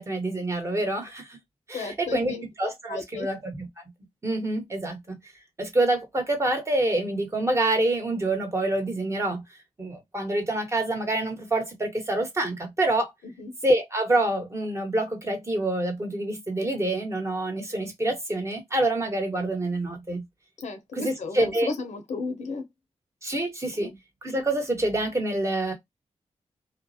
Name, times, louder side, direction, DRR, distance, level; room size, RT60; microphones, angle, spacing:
voice 1, 0.0-1.4 1.7-3.7 4.2-5.2 5.6-9.4 9.8-13.1 13.6-20.2 21.0-21.7 23.2-23.9 24.2-25.7, right 2 dB, 25° right, 1.0 m, -26 dB
voice 2, 1.7-2.4 2.9-3.3 13.4-13.5 20.6-22.7 23.8-24.0, left 3 dB, 80° left, 0.7 m, -34 dB
2.3 x 2.0 x 2.6 m
cardioid pair, 65°, 12 cm